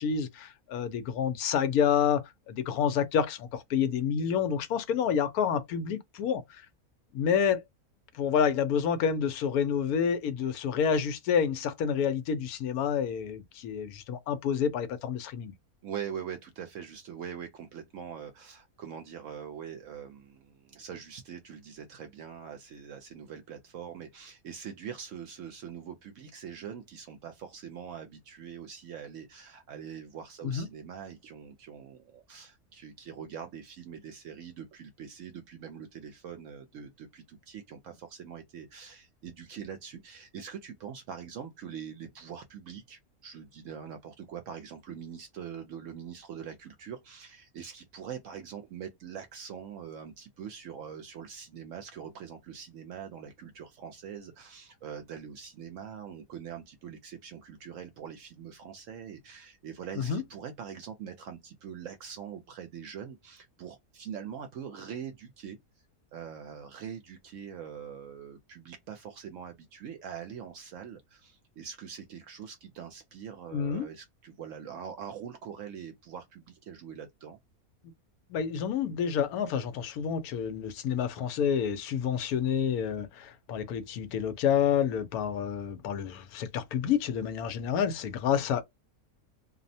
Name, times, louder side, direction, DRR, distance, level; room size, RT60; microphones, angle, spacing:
voice 1, 0.0-6.6 7.1-7.6 8.1-15.5 30.4-30.7 60.0-60.2 73.5-73.9 78.3-88.6, left 7 dB, 85° left, 1.1 m, -28 dB
voice 2, 15.8-65.6 66.1-77.4, right 8 dB, 70° right, 0.8 m, -43 dB
2.7 x 2.0 x 2.6 m
omnidirectional pair, 1.5 m